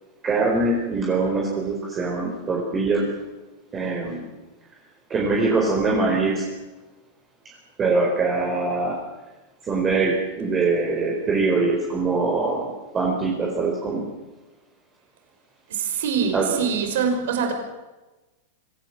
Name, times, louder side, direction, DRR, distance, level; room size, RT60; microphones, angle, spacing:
voice 1, 0.2-3.1 3.7-4.2 5.1-6.5 7.8-9.0 9.7-14.1 16.3-16.5, right 3 dB, 20° right, -1 dB, 4.4 m, -23 dB
voice 2, 15.7-17.5, right 6 dB, 75° right, 5 dB, 5.3 m, -24 dB
25.0 x 17.5 x 7.5 m, 1.1 s
supercardioid pair, 155°, 0 cm